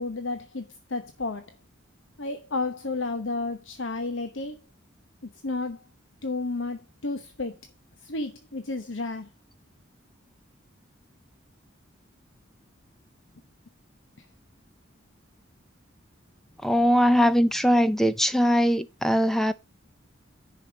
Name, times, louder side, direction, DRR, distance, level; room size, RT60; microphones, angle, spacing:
voice 1, 0.0-1.5 2.2-4.6 5.4-5.8 6.2-7.6 8.0-9.3 14.2-14.3, left 3 dB, 75° left, 1.0 m, -32 dB
voice 2, 16.6-19.5, equal, ahead, 0.5 m, -21 dB
10.5 x 5.7 x 5.1 m
head